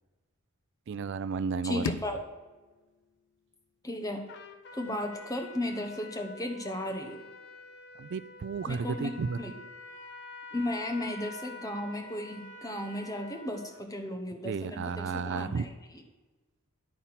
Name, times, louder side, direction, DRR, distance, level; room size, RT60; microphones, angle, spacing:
voice 1, 0.9-1.9 8.0-9.4 14.4-15.7, right 5 dB, 50° right, 15 dB, 0.3 m, -33 dB
voice 2, 1.6-2.2 3.8-4.2 4.8-7.2 8.7-9.5 10.5-15.7, left 1 dB, 15° left, 4 dB, 0.9 m, -35 dB
sound 1, 1.8-4.8, left 4 dB, 90° left, 0.5 m, -41 dB
Trumpet, 4.3-13.8, left 3 dB, 50° left, 0.7 m, -47 dB
10.5 x 4.2 x 5.7 m, 1.2 s
head